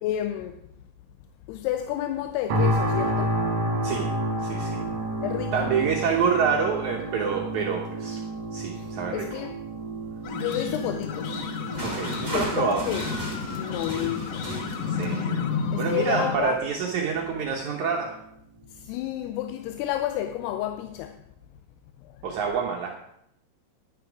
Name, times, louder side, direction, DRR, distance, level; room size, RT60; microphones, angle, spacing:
voice 1, 0.0-0.6 1.5-3.4 5.2-5.7 8.8-9.5 10.4-11.4 12.2-13.1 13.6-14.5 15.7-16.6 18.7-21.2 22.0-22.2, left 12 dB, 90° left, 8 dB, 2.7 m, -30 dB
sound 1, 2.5-17.5 18.0-18.2, right 1 dB, 55° right, 2.8 m, -31 dB
voice 2, 4.4-4.9 5.5-8.2 8.5-9.3 11.8-12.9 14.7-15.5 15.8-18.2 22.2-22.9, right 6 dB, 70° right, 0 dB, 1.8 m, -27 dB
sound 2, 10.2-16.4, left 6 dB, 70° left, 2.2 m, -31 dB
sound 3, 11.3-15.4 16.1-16.3, right 1 dB, 5° right, 2.9 m, -36 dB
11.0 x 9.5 x 5.0 m, 0.77 s
omnidirectional pair, 4.6 m